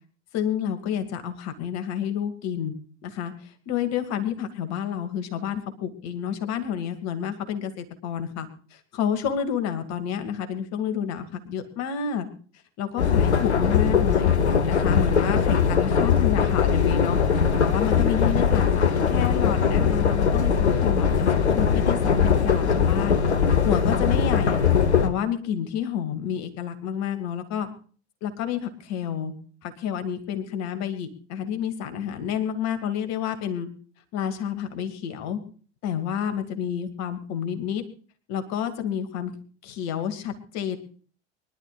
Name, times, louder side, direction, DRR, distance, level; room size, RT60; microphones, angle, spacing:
voice 1, 0.3-2.7 3.0-12.3 12.8-14.3 14.6-17.2 17.6-23.2 23.6-24.6 25.0-27.7 28.2-29.3 29.6-33.7 34.1-35.4 35.8-37.8 38.3-39.3 39.6-40.8, left 8 dB, 50° left, 8 dB, 2.4 m, -29 dB
sound 1, 13.0-25.1, left 6 dB, 80° left, 1.1 m, -21 dB
24.0 x 12.0 x 2.5 m, 0.41 s
figure-of-eight pair, 65°, 33 cm